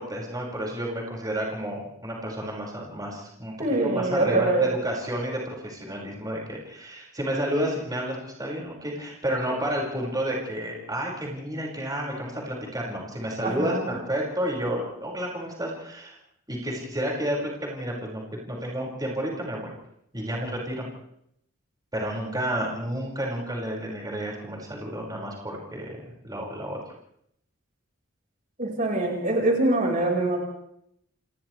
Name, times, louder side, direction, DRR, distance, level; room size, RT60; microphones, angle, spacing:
voice 1, 0.0-3.5 3.8-16.2 16.5-19.7 20.1-20.9 21.9-26.8, equal, 20° right, -2 dB, 5.5 m, -31 dB
voice 2, 3.6-4.6 13.4-14.0 28.6-30.4, right 2 dB, 40° right, 0 dB, 5.2 m, -24 dB
29.5 x 27.5 x 3.4 m, 0.75 s
head